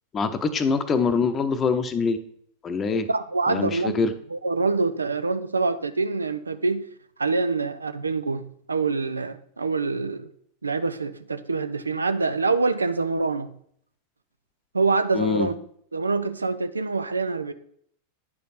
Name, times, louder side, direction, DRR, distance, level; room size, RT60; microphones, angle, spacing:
voice 1, 0.1-2.2 2.6-3.1 3.5-4.1 15.1-15.5, left 5 dB, 25° left, 0.8 m, -24 dB
voice 2, 3.1-6.8 7.2-10.3 10.6-13.5 14.7-15.6 15.9-17.5, right 3 dB, 80° right, 0.5 m, -25 dB
10.0 x 5.1 x 4.2 m
figure-of-eight pair, 90°, 0 cm